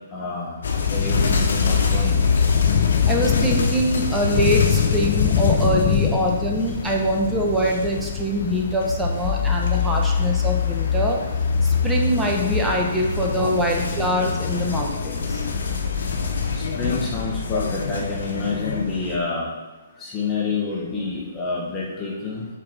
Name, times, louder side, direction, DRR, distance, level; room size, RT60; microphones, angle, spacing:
voice 1, 0.1-2.2 16.5-19.5 20.0-22.5, left 4 dB, 20° left, -5 dB, 1.4 m, -28 dB
sound 1, 0.6-19.2, left 5 dB, 70° left, 1.0 m, -24 dB
Thunder / Rain, 1.7-14.1, left 10 dB, 45° left, 0.5 m, -27 dB
voice 2, 3.1-11.2 11.6-15.4, right 1 dB, 5° right, -1 dB, 1.1 m, -24 dB
4.9 x 4.4 x 6.0 m, 1.2 s
hypercardioid pair, 130°, 0 cm